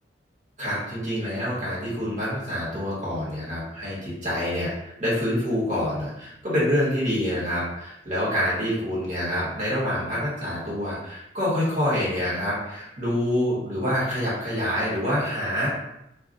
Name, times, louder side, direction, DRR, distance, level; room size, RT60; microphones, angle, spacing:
voice 1, 0.6-15.7, equal, 40° right, -7 dB, 1.2 m, -26 dB
2.3 x 2.2 x 3.8 m, 0.84 s
head